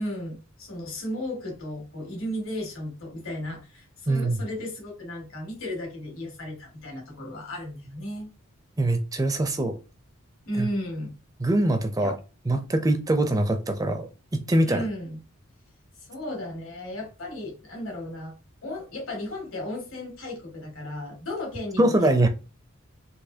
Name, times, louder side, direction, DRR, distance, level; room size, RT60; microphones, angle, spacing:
voice 1, 0.0-8.3 10.5-11.1 12.0-12.2 14.7-15.2 16.1-18.3 18.6-21.9, left 1 dB, 80° left, 1.9 m, -34 dB
voice 2, 4.1-4.4 8.8-9.8 10.6-10.7 11.4-12.2 12.5-14.8 21.8-22.3, right 1 dB, 15° right, 0.4 m, -23 dB
4.2 x 2.6 x 2.7 m
head